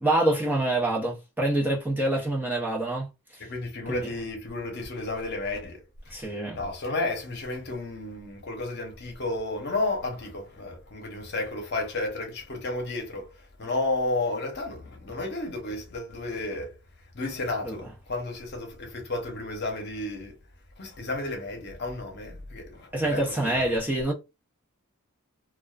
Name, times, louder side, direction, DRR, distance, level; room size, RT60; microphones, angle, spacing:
voice 1, 0.0-3.1 3.3-3.4 3.9-4.1 6.1-6.6 17.6-17.8 22.9-24.1, right 1 dB, 10° right, 0.5 m, -26 dB
voice 2, 3.4-6.2 6.5-16.8 17.1-20.4 20.8-23.7, left 2 dB, 50° left, 0.8 m, -32 dB
2.3 x 2.3 x 2.3 m
head